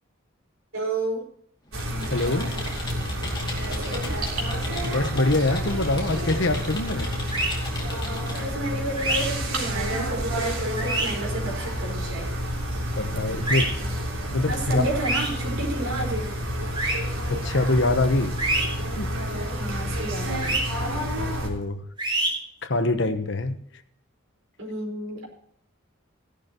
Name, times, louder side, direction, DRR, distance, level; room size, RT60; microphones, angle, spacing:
voice 1, 0.7-1.2 3.6-4.1 8.1-12.3 14.5-16.3 19.5-20.8 24.6-25.3, right 2 dB, 65° right, 4.9 m, -31 dB
Computer keyboard, 1.7-8.5, left 2 dB, 20° left, 2.5 m, -38 dB
sound 1, 1.7-21.5, equal, 85° right, 3.5 m, -29 dB
voice 2, 2.1-2.5 4.8-7.2 13.0-13.7 14.3-14.9 17.3-18.5 19.0-19.1 21.1-21.8 22.6-23.5, left 2 dB, 60° left, 1.1 m, -24 dB
sound 2, 7.3-7.5 9.0-9.2 10.8-11.1 13.5-13.6 15.0-15.3 16.7-16.9 18.4-18.7 20.4-20.6 22.0-22.3, right 2 dB, 25° right, 3.8 m, -25 dB
16.0 x 11.5 x 3.1 m
head